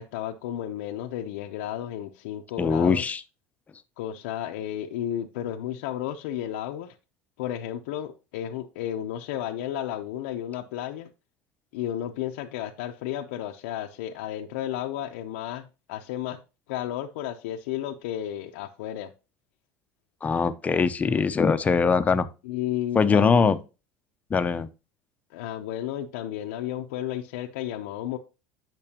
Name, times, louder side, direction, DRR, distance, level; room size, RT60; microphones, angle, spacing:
voice 1, 0.0-3.0 4.0-7.0 7.4-11.1 11.7-16.4 16.7-19.1 22.4-23.5 25.3-28.2, left 11 dB, 85° left, 0.6 m, -33 dB
voice 2, 2.6-3.2 20.2-22.3 23.0-23.6 24.3-24.7, left 5 dB, 20° left, 0.6 m, -22 dB
8.8 x 6.0 x 2.8 m
supercardioid pair, 120°, 7 cm